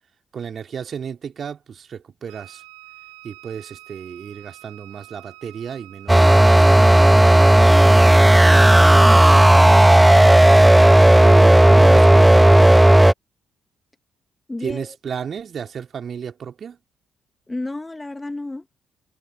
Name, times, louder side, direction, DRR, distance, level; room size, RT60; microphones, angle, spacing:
voice 1, 0.3-2.6 3.2-6.9 9.3-9.7 11.2-12.8 14.6-16.8, right 7 dB, 50° right, 3.5 m, -33 dB
Wind instrument woodwind instrument, 2.3-6.5, right 29 dB, 75° right, 6.2 m, -46 dB
sound 1, 6.1-13.1, right 1 dB, 10° right, 0.6 m, -11 dB
voice 2, 7.4-8.2 9.0-9.2 14.5-15.0 17.5-18.6, left 2 dB, 20° left, 2.5 m, -32 dB
figure-of-eight pair, 40°, 0 cm